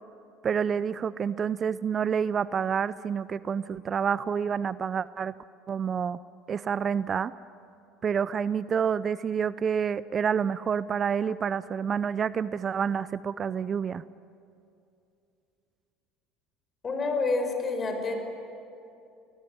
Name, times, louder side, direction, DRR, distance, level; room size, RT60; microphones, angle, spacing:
voice 1, 0.4-5.3 5.7-6.2 6.5-7.3 8.0-14.0, right 7 dB, 40° right, 17 dB, 0.6 m, -28 dB
voice 2, 16.8-18.1, left 3 dB, 35° left, 5 dB, 6.2 m, -28 dB
29.0 x 19.5 x 9.7 m, 2.7 s
hypercardioid pair, 70°, 0 cm